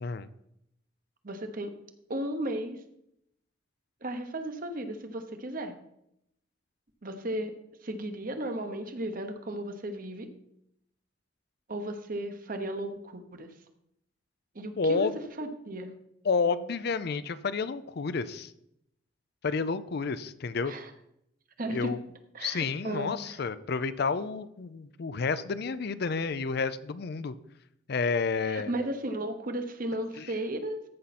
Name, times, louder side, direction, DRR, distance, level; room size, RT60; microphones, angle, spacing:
voice 1, 1.2-1.7 2.1-2.8 4.0-5.7 7.0-7.5 7.8-10.3 11.7-13.5 14.5-15.1 15.4-15.9 20.7-20.9 21.6-21.9 22.3-23.4 28.4-30.9, right 1 dB, 45° right, 7 dB, 1.0 m, -35 dB
voice 2, 14.8-15.1 16.2-18.5 19.4-20.7 21.7-22.0 22.4-27.3 27.9-28.7 30.2-30.3, left 4 dB, 55° left, 14 dB, 0.5 m, -30 dB
14.0 x 5.6 x 4.2 m, 0.77 s
head